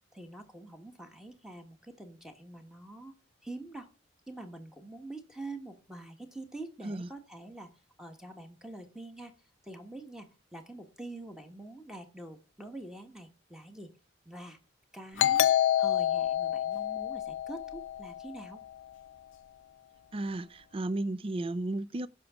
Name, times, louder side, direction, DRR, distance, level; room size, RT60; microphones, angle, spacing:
voice 1, 0.1-3.1 3.4-3.9 4.3-7.7 8.0-9.3 9.6-13.9 14.2-14.6 14.9-15.5 15.8-18.6, right 2 dB, 5° right, 1.3 m, -45 dB
Doorbell, 15.2-18.5, left 11 dB, 80° left, 0.5 m, -28 dB
voice 2, 20.1-22.1, right 2 dB, 30° right, 0.4 m, -34 dB
16.0 x 6.0 x 3.6 m
head